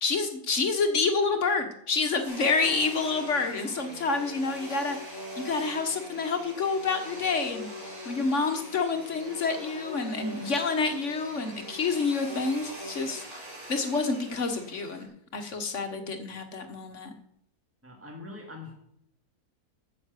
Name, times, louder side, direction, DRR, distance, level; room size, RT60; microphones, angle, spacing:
voice 1, 0.0-13.2 13.7-17.1, left 4 dB, 50° left, 7 dB, 1.5 m, -28 dB
Domestic sounds home sounds, 2.2-15.0, equal, 45° right, 4.0 m, -42 dB
voice 2, 17.8-18.7, left 3 dB, 10° right, 1 dB, 2.4 m, -43 dB
9.5 x 6.7 x 8.2 m, 0.71 s
omnidirectional pair, 1.6 m